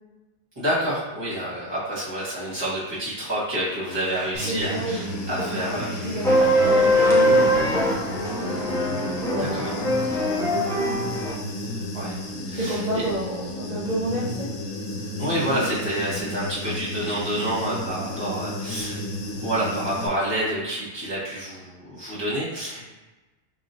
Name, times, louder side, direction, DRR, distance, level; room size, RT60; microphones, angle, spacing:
voice 1, 0.6-5.9 9.4-9.7 11.9-12.2 12.5-13.0 15.2-19.0 19.3-22.9, right 1 dB, 20° right, -9 dB, 1.3 m, -28 dB
Motorcycle, 3.6-10.1, right 1 dB, 65° right, 1.8 m, -43 dB
Human voice / Buzz, 4.3-20.1, left 1 dB, 75° left, 1.0 m, -33 dB
voice 2, 4.5-8.0 9.2-11.1 12.5-14.5, right 1 dB, 40° right, -8 dB, 0.7 m, -31 dB
sound 1, 6.2-11.3, equal, 5° left, 0.3 m, -21 dB
4.8 x 2.7 x 2.7 m, 1.1 s
omnidirectional pair, 1.3 m